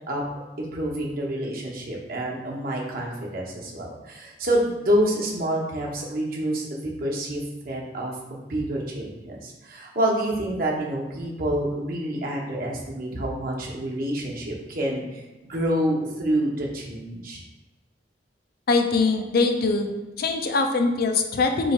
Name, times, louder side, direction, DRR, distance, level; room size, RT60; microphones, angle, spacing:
voice 1, 0.6-15.2 15.5-17.4, right 1 dB, 55° right, -2 dB, 0.9 m, -27 dB
voice 2, 18.7-19.9 20.2-21.7, left 3 dB, 60° left, 5 dB, 0.4 m, -22 dB
3.3 x 3.1 x 4.2 m, 1.1 s
head